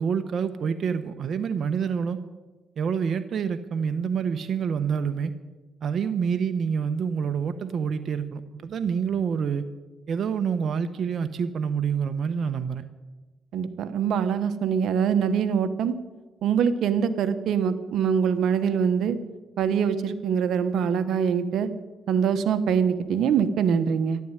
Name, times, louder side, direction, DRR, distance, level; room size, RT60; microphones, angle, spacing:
voice 1, 0.0-2.2 2.8-5.3 5.8-9.6 10.1-12.8, right 6 dB, 55° right, 8 dB, 1.0 m, -27 dB
voice 2, 13.5-15.9 16.4-19.2 19.6-21.7 22.1-24.2, right 7 dB, 75° right, 11 dB, 1.1 m, -24 dB
13.0 x 12.0 x 9.0 m, 1.2 s
cardioid pair, 90°, 0 cm